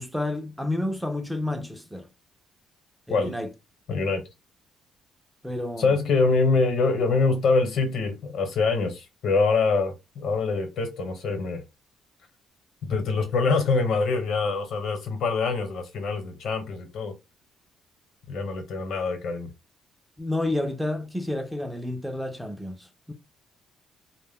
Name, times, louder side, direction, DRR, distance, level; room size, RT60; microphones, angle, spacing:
voice 1, 0.0-2.1 3.1-3.5 5.4-6.0 20.2-23.1, left 1 dB, 5° right, 0.4 m, -30 dB
voice 2, 3.9-4.2 5.8-11.6 12.8-17.1 18.3-19.5, left 4 dB, 65° left, 1.0 m, -24 dB
2.1 x 2.1 x 3.5 m
cardioid pair, 125°, 0 cm